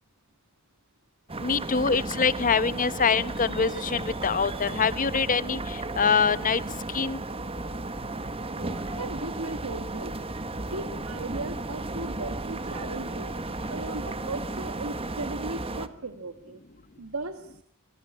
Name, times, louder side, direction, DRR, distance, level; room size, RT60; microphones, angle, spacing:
sound 1, 1.3-15.9, right 2 dB, 25° right, 1.6 m, -34 dB
voice 1, 1.4-6.6 6.9-7.2, left 5 dB, 40° left, 16 dB, 1.0 m, -24 dB
voice 2, 8.5-10.2 10.7-13.3 13.7-16.6 17.0-17.6, right 2 dB, 80° right, 9 dB, 1.7 m, -37 dB
27.0 x 20.0 x 9.8 m, 0.73 s
head